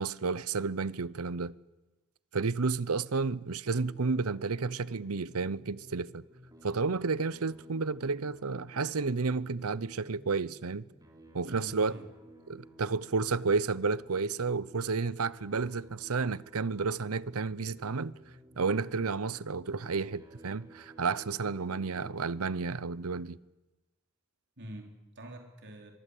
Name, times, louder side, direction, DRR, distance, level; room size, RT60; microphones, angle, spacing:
voice 1, 0.0-1.5 2.3-6.2 6.6-10.9 11.3-11.9 12.5-18.2 18.6-23.4, right 4 dB, 75° right, 0.8 m, -31 dB
sound 1, 3.6-22.5, right 1 dB, 15° right, 4.2 m, -55 dB
voice 2, 11.4-12.1 24.6-25.9, right 1 dB, 55° right, 4.3 m, -45 dB
24.0 x 23.0 x 8.5 m
head